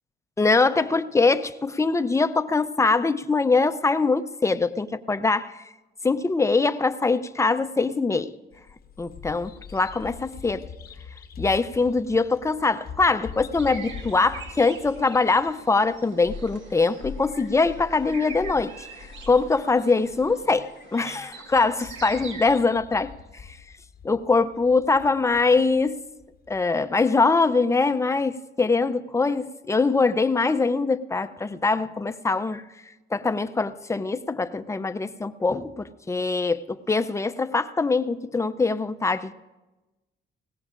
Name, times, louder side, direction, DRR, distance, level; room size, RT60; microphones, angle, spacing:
voice 1, 0.4-5.7 6.0-8.3 9.0-10.7 11.4-23.6 24.0-26.0 26.5-32.6 33.1-39.3, left 3 dB, 15° left, 0.5 m, -23 dB
Bird vocalization bird call bird song, 8.5-26.6, left 6 dB, 50° left, 0.8 m, -44 dB
sound 1, 13.6-22.5, right 5 dB, 75° right, 1.6 m, -44 dB
20.5 x 17.0 x 2.5 m
cardioid pair, 90°, 20 cm